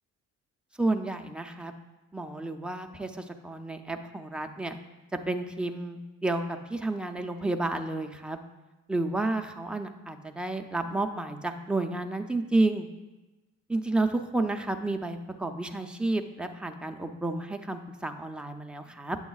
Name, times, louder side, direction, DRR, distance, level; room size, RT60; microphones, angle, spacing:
voice 1, 0.8-1.7 2.1-4.8 5.3-8.4 8.9-12.9 13.7-19.2, right 2 dB, 5° right, 5 dB, 0.5 m, -31 dB
8.5 x 7.2 x 2.4 m, 1.1 s
cardioid pair, 90°, 30 cm